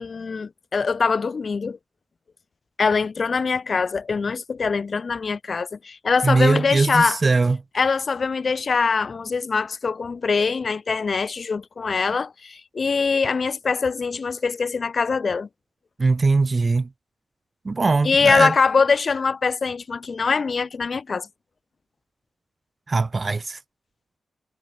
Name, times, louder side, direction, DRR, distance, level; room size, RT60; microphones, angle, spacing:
voice 1, 0.0-1.8 2.8-7.2 7.7-15.5 18.0-21.3, left 5 dB, 50° left, 7.3 m, -23 dB
voice 2, 6.2-7.6 16.0-16.9 17.6-18.5 22.9-23.6, right 3 dB, 35° right, 1.4 m, -20 dB
cardioid pair, 95°, 0 cm